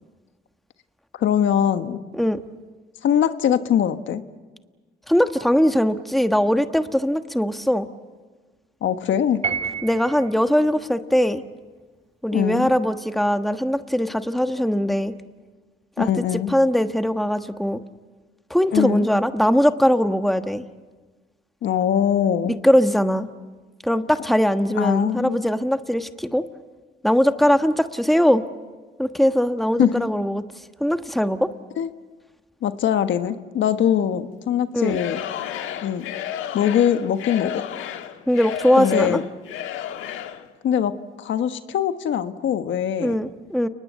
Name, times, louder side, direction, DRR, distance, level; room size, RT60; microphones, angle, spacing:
voice 1, 1.1-2.0 3.0-4.2 8.8-9.4 12.3-12.7 16.0-16.5 18.7-19.1 21.6-22.5 24.7-25.4 29.8-30.0 31.8-31.9 32.6-35.2 35.8-36.0 36.5-37.7 38.8-39.2 40.6-40.9 41.2-43.2, left 9 dB, 75° left, 9 dB, 1.4 m, -22 dB
voice 2, 5.1-7.9 9.8-11.4 12.2-15.1 16.0-16.1 16.5-17.8 18.5-20.6 22.6-23.3 23.8-26.4 27.0-28.4 29.0-30.4 30.8-31.5 34.7-35.0 38.3-39.2 43.0-43.7, equal, ahead, 8 dB, 1.4 m, -20 dB
Piano, 9.4-10.3, right 6 dB, 35° right, 4.3 m, -28 dB
Singing / Crowd, 34.8-40.5, left 10 dB, 90° left, 1.5 m, -32 dB
29.5 x 20.5 x 8.3 m, 1.3 s
cardioid pair, 90°, 20 cm